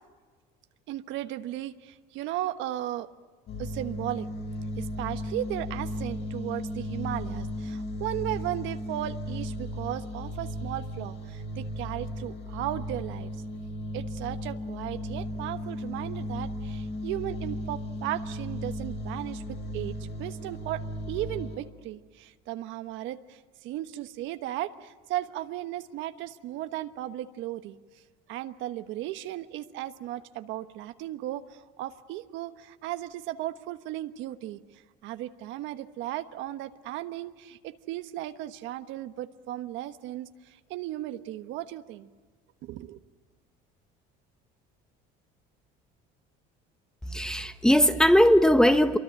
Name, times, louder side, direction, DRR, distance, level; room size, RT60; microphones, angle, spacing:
voice 1, 0.9-3.1 3.6-4.3 4.8-13.3 13.9-27.8 28.3-34.6 35.0-42.1 42.6-43.0, right 14 dB, 70° right, 1.3 m, -36 dB
sound 1, 3.5-21.6, equal, 60° left, 7.2 m, -35 dB
voice 2, 47.1-49.0, equal, 5° left, 1.2 m, -19 dB
26.0 x 23.5 x 8.9 m
cardioid pair, 120°, 20 cm